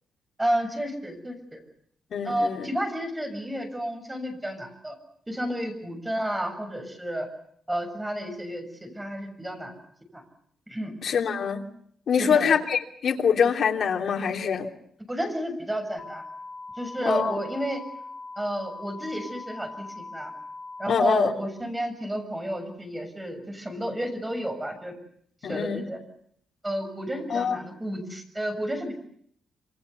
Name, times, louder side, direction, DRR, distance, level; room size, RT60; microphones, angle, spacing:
voice 1, 0.4-1.6 2.2-5.0 5.3-7.3 7.7-9.7 10.1-10.2 10.7-10.9 12.2-12.5 15.1-16.2 16.8-17.8 18.4-20.3 20.8-24.9 25.4-26.0 26.6-28.9, equal, 10° right, 5 dB, 6.9 m, -31 dB
voice 2, 2.1-2.7 11.0-11.7 12.1-14.7 17.0-17.4 20.9-21.3 25.4-25.8 27.3-27.6, left 7 dB, 55° left, 3 dB, 3.2 m, -24 dB
sound 1, 16.0-21.0, left 3 dB, 30° left, 3.9 m, -41 dB
27.0 x 26.5 x 7.0 m, 0.66 s
wide cardioid pair, 145°, 0 cm